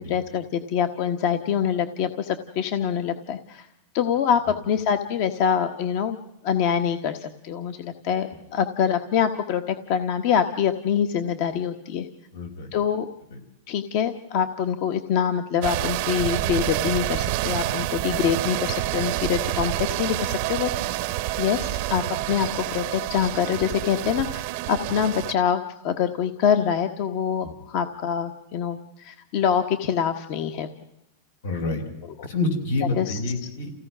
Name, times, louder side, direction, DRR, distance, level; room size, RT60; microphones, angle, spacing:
voice 1, 0.1-3.7 3.9-6.2 6.4-12.1 12.7-13.1 13.7-19.7 20.0-20.7 21.4-30.7 32.2-32.3 33.0-33.2, left 8 dB, 45° left, 8 dB, 1.3 m, -25 dB
voice 2, 12.3-12.7 13.3-13.4 27.4-27.5 31.4-31.8 32.2-33.7, left 3 dB, 85° left, 4 dB, 5.9 m, -27 dB
sound 1, 15.6-25.3, right 16 dB, 45° right, 0.8 m, -28 dB
29.0 x 16.5 x 6.2 m, 0.90 s
supercardioid pair, 165°, 0 cm